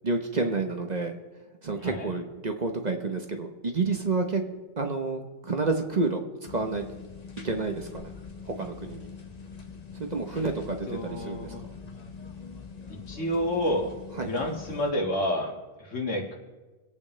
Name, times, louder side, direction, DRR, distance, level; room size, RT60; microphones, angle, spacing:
voice 1, 0.0-1.1 1.6-4.4 4.8-6.2 6.5-6.8 7.4-8.1 8.5-9.1 10.1-11.5 14.2-14.3, right 3 dB, 40° right, 5 dB, 0.9 m, -29 dB
voice 2, 1.8-2.1 10.3-10.5 10.9-11.6 12.9-13.9 14.2-16.3, left 1 dB, 75° left, 1 dB, 2.2 m, -30 dB
sound 1, 6.5-14.9, left 5 dB, 35° left, 1.0 m, -43 dB
25.5 x 8.8 x 3.2 m, 1.2 s
omnidirectional pair, 1.3 m